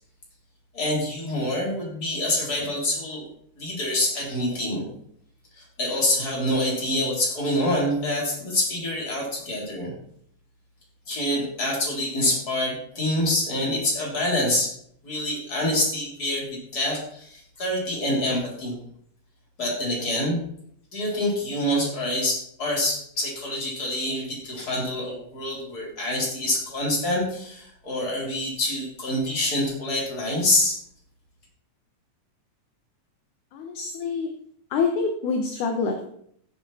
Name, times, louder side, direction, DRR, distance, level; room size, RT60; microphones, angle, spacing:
voice 1, 0.7-3.2 3.6-4.9 5.6-9.9 11.1-14.7 15.0-18.7 19.6-20.4 20.9-30.8, left 1 dB, 25° left, -3 dB, 4.1 m, -26 dB
voice 2, 33.5-34.3 34.7-36.0, left 4 dB, 70° left, 3 dB, 2.4 m, -26 dB
15.5 x 7.0 x 4.2 m, 0.68 s
omnidirectional pair, 4.0 m